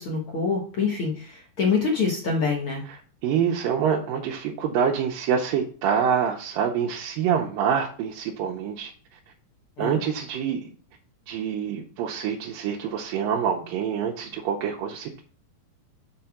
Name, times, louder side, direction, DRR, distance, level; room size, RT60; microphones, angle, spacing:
voice 1, 0.0-2.8 9.8-10.0, left 5 dB, 55° left, -1 dB, 1.5 m, -25 dB
voice 2, 3.2-8.9 9.8-10.7 11.3-15.2, right 7 dB, 80° right, 0 dB, 2.4 m, -26 dB
6.6 x 4.3 x 5.8 m, 0.41 s
omnidirectional pair, 4.0 m